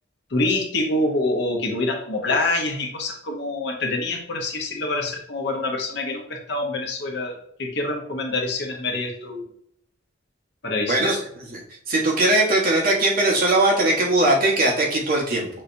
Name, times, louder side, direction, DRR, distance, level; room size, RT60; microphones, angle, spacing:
voice 1, 0.3-9.4 10.6-11.2, left 2 dB, 60° left, 2 dB, 0.9 m, -26 dB
voice 2, 10.8-11.6 11.9-15.5, right 2 dB, 50° right, -3 dB, 1.3 m, -20 dB
5.4 x 3.1 x 2.6 m, 0.69 s
head